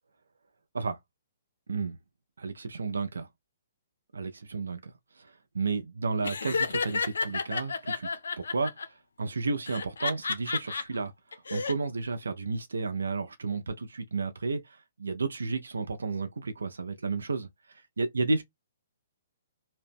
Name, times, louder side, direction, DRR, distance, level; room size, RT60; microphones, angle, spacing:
voice 1, 2.4-3.3 4.1-4.9 5.2-8.1 8.5-8.7 9.2-11.1 11.5-18.4, right 4 dB, 85° right, 0.5 m, -32 dB
Laughter, 6.2-8.8 9.7-10.8 11.3-11.7, left 4 dB, 80° left, 0.5 m, -31 dB
2.8 x 2.0 x 3.2 m
hypercardioid pair, 135°, 0 cm